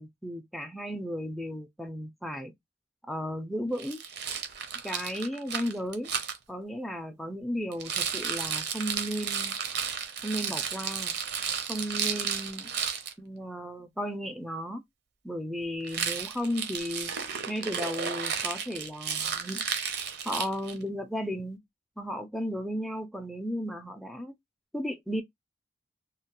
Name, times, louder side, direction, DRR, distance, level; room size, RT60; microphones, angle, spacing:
voice 1, 0.0-2.5 3.0-4.0 4.8-6.1 6.5-9.6 10.2-11.1 11.6-12.7 13.2-14.8 15.2-17.2 17.5-19.6 20.2-21.6 22.0-24.3 24.7-25.2, equal, ahead, 0.3 m, -34 dB
Rattle, 3.8-6.4 7.7-13.1 15.8-20.8, right 7 dB, 60° right, 0.6 m, -33 dB
2.9 x 2.0 x 2.8 m
head